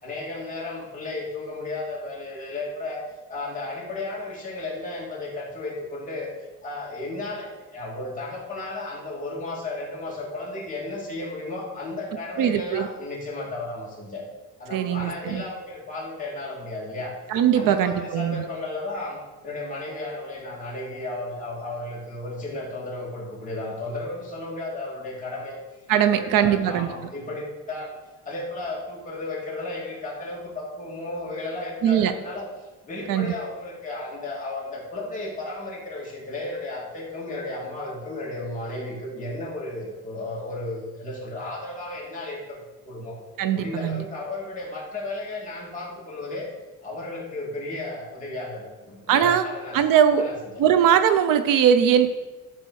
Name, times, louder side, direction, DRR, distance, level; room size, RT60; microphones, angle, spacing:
voice 1, 0.0-3.0 3.3-6.3 6.6-14.2 14.6-17.2 17.5-25.6 26.2-27.9 28.2-43.1 43.5-46.5 46.8-49.8 50.1-50.3, left 2 dB, 25° left, -5 dB, 2.6 m, -34 dB
voice 2, 12.4-12.9 14.7-15.4 17.3-18.4 25.9-26.9 31.8-32.1 33.1-33.3 43.4-44.0 49.1-49.4 49.7-50.2 50.6-52.1, right 9 dB, 75° right, 10 dB, 0.8 m, -20 dB
12.5 x 4.4 x 6.4 m, 1.2 s
cardioid pair, 170°, 33 cm